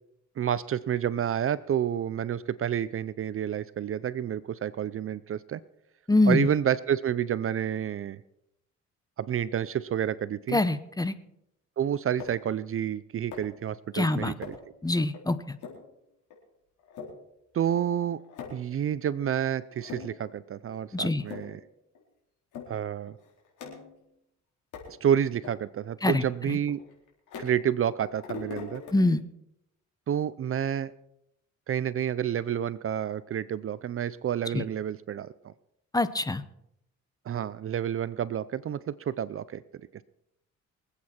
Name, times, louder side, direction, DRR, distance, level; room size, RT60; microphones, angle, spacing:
voice 1, 0.4-5.6 6.3-8.2 9.2-10.6 11.8-14.5 17.5-18.2 18.5-21.6 22.7-23.2 24.9-26.8 27.4-28.8 30.1-30.9 31.7-35.5 37.3-39.6, right 9 dB, 45° right, 17 dB, 0.6 m, -29 dB
voice 2, 6.1-6.5 10.5-11.1 13.9-14.3 14.8-15.6 20.9-21.2 26.0-26.6 28.9-29.2 34.5-34.6 35.9-36.4, left 2 dB, 10° left, 13 dB, 0.9 m, -25 dB
sound 1, 12.2-12.5 13.3-13.7 14.4-14.7 15.1-15.2 15.6-15.9 16.3-16.4 16.8-17.1 17.7-17.8 18.0-18.7 19.2-19.3 19.7-20.3 20.7-20.8 21.2-21.6 21.9-22.0 22.5-22.7 23.1-24.1 24.7-25.0 25.4-25.5 26.1-27.8 28.0-28.9, left 5 dB, 90° left, 4.1 m, -42 dB
24.5 x 8.6 x 4.4 m, 0.79 s
cardioid pair, 90°, 30 cm